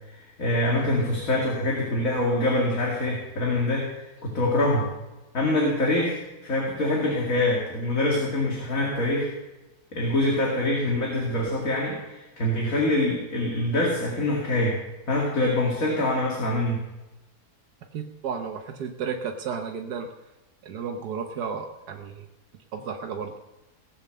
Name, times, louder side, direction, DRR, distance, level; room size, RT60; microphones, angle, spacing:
voice 1, 0.1-4.9 5.3-9.3 9.9-14.8 15.1-16.8, left 1 dB, 55° left, -3 dB, 2.8 m, -25 dB
voice 2, 17.9-20.1 20.6-22.3 22.7-23.3, right 6 dB, 85° right, 3 dB, 1.6 m, -33 dB
18.5 x 7.4 x 6.7 m, 1.0 s
omnidirectional pair, 1.7 m